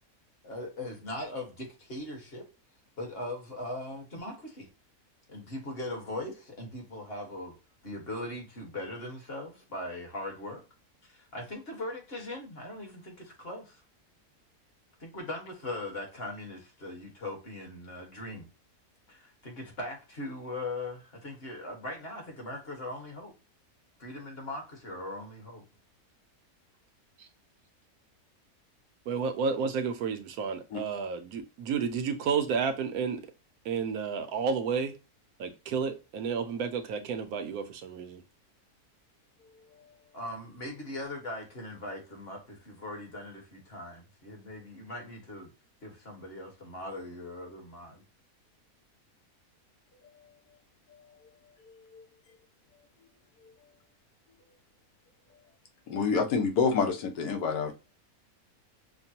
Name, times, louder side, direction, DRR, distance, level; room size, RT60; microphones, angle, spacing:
voice 1, 0.4-2.5 3.0-4.7 5.3-7.5 7.8-10.6 11.1-13.8 15.0-18.4 19.1-23.3 24.0-25.6 40.1-45.5 45.8-48.0, left 1 dB, 40° left, 1.6 m, -40 dB
voice 2, 29.1-33.3 33.6-35.0 35.4-38.2, right 6 dB, 75° right, 1.1 m, -31 dB
voice 3, 55.9-57.7, left 5 dB, 85° left, 1.3 m, -27 dB
5.9 x 2.2 x 2.8 m
omnidirectional pair, 1.6 m